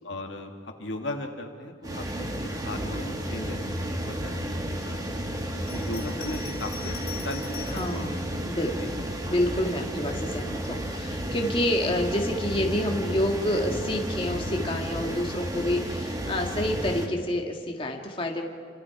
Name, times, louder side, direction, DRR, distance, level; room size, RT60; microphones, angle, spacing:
voice 1, 0.0-5.0 5.7-7.0 7.2-8.2 8.8-8.9, left 2 dB, 65° left, 3 dB, 2.1 m, -37 dB
sound 1, 1.8-17.1, equal, 20° right, 1.9 m, -32 dB
Bell, 5.6-8.0 8.8-9.7, left 9 dB, 45° left, 2.8 m, -43 dB
voice 2, 7.7-8.1 8.5-8.7 9.3-18.5, left 1 dB, 25° left, 1 dB, 1.8 m, -28 dB
29.5 x 26.5 x 4.8 m, 2.1 s
head